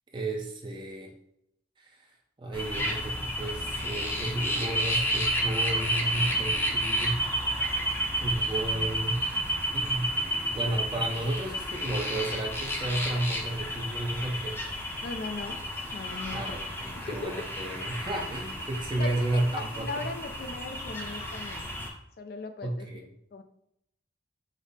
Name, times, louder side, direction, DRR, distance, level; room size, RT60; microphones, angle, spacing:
voice 1, 0.1-1.1 1.8-2.1 2.4-7.2 8.2-9.2 9.7-10.1 10.5-14.6 16.3-20.1 22.6-23.1, right 1 dB, 25° right, 1 dB, 0.5 m, -32 dB
sound 1, 2.5-21.9, equal, 15° left, 0.6 m, -31 dB
voice 2, 15.0-15.6 15.9-16.6 16.9-17.4 18.9-21.7 22.2-23.0 23.3-23.4, left 3 dB, 60° left, 8 dB, 0.4 m, -38 dB
5.1 x 2.0 x 4.0 m, 0.78 s
head